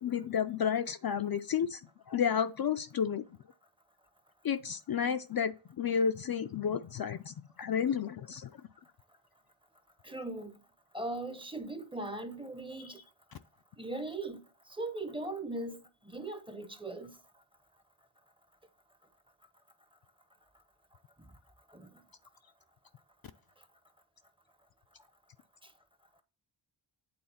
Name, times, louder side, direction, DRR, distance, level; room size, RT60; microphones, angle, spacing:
voice 1, 0.0-1.8 2.1-3.2 4.4-8.5 12.8-12.9, left 7 dB, 50° left, 0.4 m, -31 dB
voice 2, 10.0-10.5 10.9-13.0 13.8-14.4 14.8-15.8 16.1-17.1 21.7-21.9, right 2 dB, 10° right, 0.7 m, -39 dB
8.7 x 3.6 x 5.6 m
wide cardioid pair, 145°, 50 cm